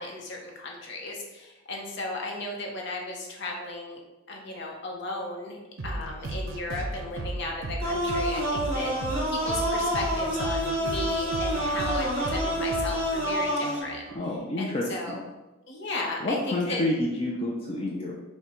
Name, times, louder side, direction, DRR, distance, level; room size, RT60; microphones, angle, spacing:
voice 1, 0.0-4.0 4.3-5.6 5.8-14.0 14.6-15.2 15.7-16.8, left 2 dB, 55° left, 0 dB, 0.7 m, -35 dB
sound 1, 5.8-14.2, right 1 dB, 70° right, 0.5 m, -35 dB
sound 2, 7.8-13.8, equal, 30° right, 1.3 m, -28 dB
voice 2, 14.1-15.2 16.2-18.2, left 1 dB, 25° left, -3 dB, 0.4 m, -29 dB
5.6 x 2.2 x 3.0 m, 1.1 s
head